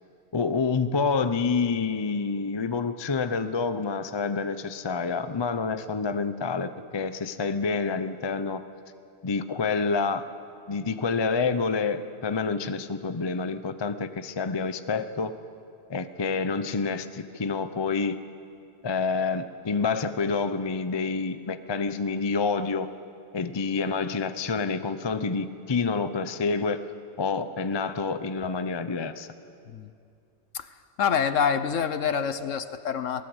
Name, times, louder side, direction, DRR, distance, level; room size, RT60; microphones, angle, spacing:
voice 1, 0.3-8.6 9.2-10.3 10.7-15.4 15.9-18.2 18.8-22.9 23.3-26.9 27.2-29.3, left 4 dB, 30° left, 11 dB, 0.5 m, -28 dB
voice 2, 31.0-33.3, left 7 dB, 60° left, 12 dB, 1.2 m, -26 dB
23.0 x 18.0 x 8.0 m, 2.4 s
omnidirectional pair, 1.6 m